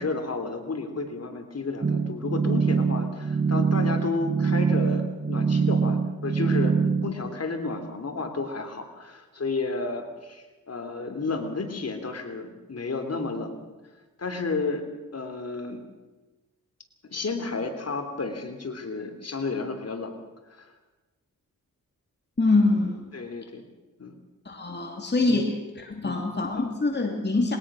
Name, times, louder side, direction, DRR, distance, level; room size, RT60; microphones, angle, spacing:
voice 1, 0.0-6.7 7.0-13.7 14.2-14.8 15.1-15.8 17.1-20.1 20.5-20.7 23.1-23.6 24.0-24.2 25.3-25.5 26.0-26.2, left 3 dB, 50° left, 6 dB, 3.3 m, -32 dB
sound 1, 1.8-7.1, right 5 dB, 30° right, 1.2 m, -24 dB
voice 2, 22.4-23.0 24.5-25.5 25.9-27.6, left 3 dB, 30° left, 2 dB, 2.7 m, -24 dB
21.5 x 19.0 x 6.3 m, 1.2 s
cardioid pair, 75°, 33 cm